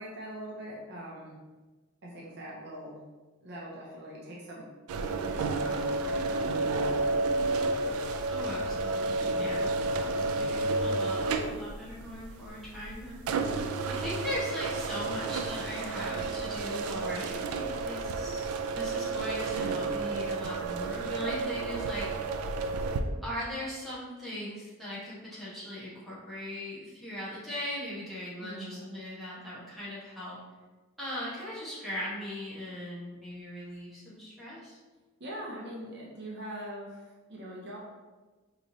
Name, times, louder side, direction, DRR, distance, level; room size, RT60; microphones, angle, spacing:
voice 1, 0.0-1.3 2.0-3.0 3.4-4.7 5.2-7.1 9.3-9.7 28.4-28.8 35.2-37.8, right 1 dB, 50° right, -4 dB, 0.6 m, -42 dB
sound 1, 4.9-23.0, right 3 dB, 80° right, 0.3 m, -31 dB
voice 2, 8.3-13.2 13.9-22.4 23.2-30.4 31.0-34.8, left 1 dB, ahead, -10 dB, 1.1 m, -39 dB
4.4 x 3.0 x 2.7 m, 1.3 s
head